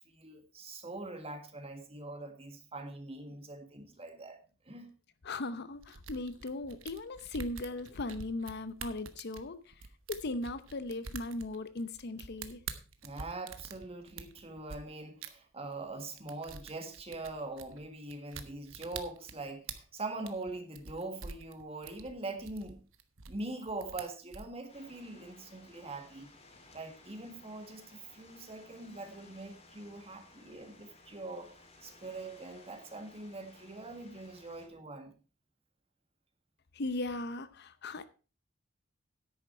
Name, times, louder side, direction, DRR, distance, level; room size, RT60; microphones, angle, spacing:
voice 1, 0.0-4.4 4.7-4.9 13.0-22.8 23.3-26.3 26.7-31.6 31.8-35.1, right 2 dB, 30° right, 1.8 m, -43 dB
voice 2, 5.2-9.7 10.1-12.6 36.7-38.1, left 2 dB, 55° left, 0.7 m, -38 dB
sound 1, 5.8-14.8 15.2-15.3 15.7-15.9 16.2-24.5, right 5 dB, 75° right, 1.1 m, -46 dB
sound 2, 24.7-34.7, left 2 dB, 30° left, 2.4 m, -58 dB
10.0 x 8.8 x 4.5 m
head